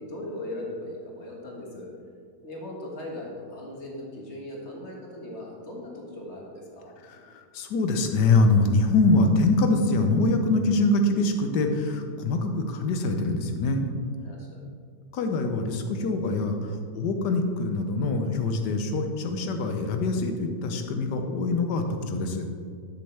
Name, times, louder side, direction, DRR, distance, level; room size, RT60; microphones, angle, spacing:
voice 1, 0.0-1.9 2.4-6.9 14.2-14.6, left 1 dB, 40° left, -2 dB, 1.8 m, -38 dB
voice 2, 7.1-13.9 15.1-22.4, left 2 dB, 80° left, 5 dB, 1.4 m, -24 dB
11.5 x 6.7 x 3.3 m, 2.1 s
omnidirectional pair, 1.8 m